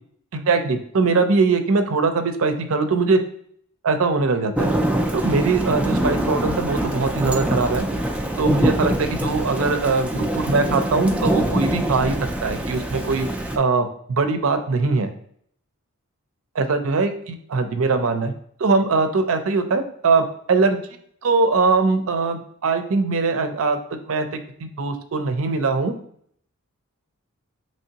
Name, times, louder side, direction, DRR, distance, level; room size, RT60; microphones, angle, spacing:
voice 1, 0.5-3.2 3.8-4.7 5.1-7.9 8.4-13.3 13.6-15.1 16.5-18.3 18.6-20.8 21.2-23.8 24.1-24.3 24.6-25.9, right 4 dB, 65° right, 8 dB, 0.5 m, -21 dB
Thunder / Rain, 4.6-13.6, right 1 dB, 5° right, 0.3 m, -24 dB
5.3 x 3.1 x 2.8 m, 0.65 s
head